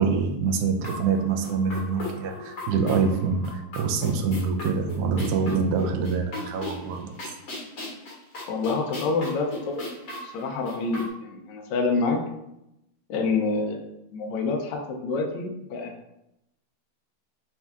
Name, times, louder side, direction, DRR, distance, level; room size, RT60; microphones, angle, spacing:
voice 1, 0.0-7.1, right 5 dB, 80° right, 3 dB, 0.9 m, -25 dB
sound 1, 0.8-11.1, left 2 dB, 45° left, 1.6 m, -37 dB
voice 2, 8.5-9.8 10.2-12.2 13.1-13.8 14.1-15.9, left 3 dB, 70° left, 1 dB, 1.1 m, -27 dB
4.3 x 2.7 x 3.4 m, 0.85 s
omnidirectional pair, 2.4 m